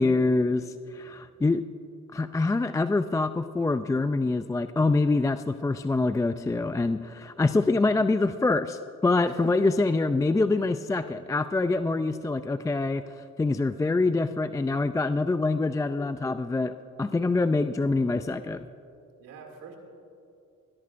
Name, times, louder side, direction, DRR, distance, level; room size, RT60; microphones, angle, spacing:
voice 1, 0.0-1.6 2.1-13.0 13.4-16.7 17.0-18.7, left 3 dB, 10° left, 11 dB, 0.3 m, -25 dB
voice 2, 9.2-9.9 10.5-10.7 17.1-17.6 19.2-19.8, right 5 dB, 90° right, 1 dB, 2.5 m, -47 dB
21.0 x 15.5 x 2.5 m, 2.6 s
cardioid pair, 80°, 31 cm